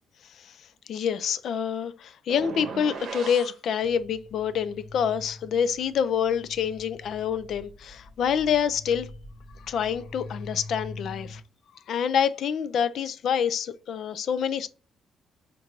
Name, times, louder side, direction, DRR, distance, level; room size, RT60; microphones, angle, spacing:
voice 1, 0.9-9.1 9.6-11.4 11.9-14.7, left 8 dB, 65° left, 0.3 m, -27 dB
sound 1, 2.3-3.6, right 5 dB, 70° right, 0.7 m, -37 dB
sound 2, 3.8-11.4, left 2 dB, 40° left, 0.8 m, -44 dB
4.5 x 2.6 x 2.9 m
cardioid pair, 90°, 0 cm